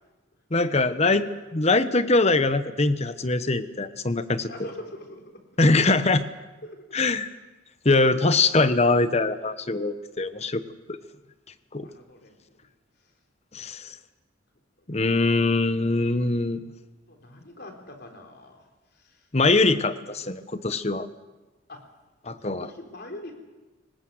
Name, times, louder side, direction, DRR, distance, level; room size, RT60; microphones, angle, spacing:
voice 1, 0.5-1.3 1.5-4.5 5.6-6.3 6.9-7.3 7.8-10.6 11.7-11.9 13.5-13.9 14.9-16.6 19.3-21.1 22.3-22.7, left 3 dB, 35° left, 12 dB, 1.0 m, -22 dB
voice 2, 4.5-5.4 6.6-6.8 11.8-12.6 14.8-15.1 17.1-18.7 18.9-19.3 19.5-19.8 21.7-21.8 22.4-23.4, left 1 dB, 55° left, 3 dB, 3.8 m, -43 dB
24.5 x 19.5 x 7.9 m, 1.2 s
head